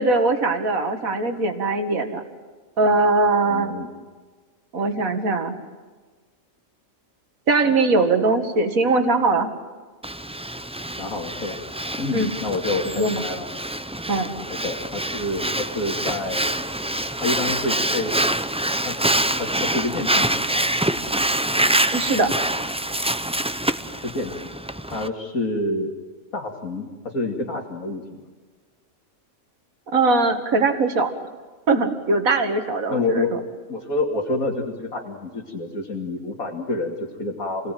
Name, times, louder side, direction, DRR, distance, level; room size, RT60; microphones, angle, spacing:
voice 1, 0.0-2.2 2.8-3.7 4.7-5.5 7.5-9.5 12.1-12.3 12.9-13.2 14.1-14.3 21.9-22.3 29.9-31.1 31.7-33.2, right 3 dB, 80° right, 7 dB, 2.4 m, -21 dB
voice 2, 3.4-3.9 11.0-11.6 12.0-13.5 14.5-16.5 17.2-18.2 18.8-19.0 19.4-20.3 24.0-24.5 24.9-25.9 26.3-28.2 32.9-33.4 33.7-37.7, left 2 dB, 85° left, -2 dB, 2.9 m, -28 dB
Breathing, 10.0-25.1, right 1 dB, 5° right, 0.4 m, -25 dB
28.0 x 18.5 x 9.2 m, 1.4 s
omnidirectional pair, 1.4 m